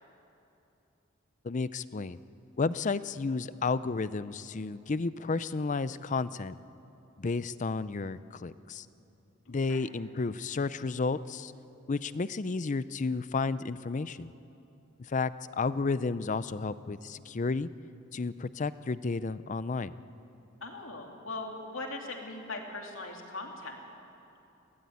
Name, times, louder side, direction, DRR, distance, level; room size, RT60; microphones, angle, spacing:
voice 1, 1.4-2.2 2.6-6.5 7.2-8.9 9.5-11.5 11.9-14.3 15.0-17.7 18.1-19.9, left 4 dB, 35° left, 16 dB, 0.5 m, -32 dB
voice 2, 9.5-9.9 20.6-23.8, left 2 dB, 65° left, 1 dB, 2.9 m, -40 dB
22.5 x 17.0 x 9.5 m, 2.9 s
head